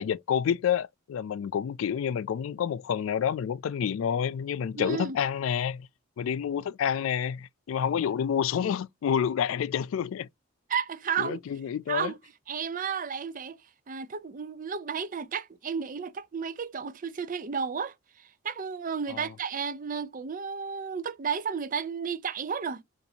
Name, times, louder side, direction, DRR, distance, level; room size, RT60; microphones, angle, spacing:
voice 1, 0.0-5.9 6.2-10.3 11.2-12.1 19.1-19.3, left 8 dB, 80° left, 0.3 m, -29 dB
voice 2, 4.7-5.2 10.7-11.4 11.9-12.2 12.5-13.6 13.9-22.8, right 6 dB, 40° right, 0.5 m, -33 dB
7.0 x 2.6 x 2.7 m
head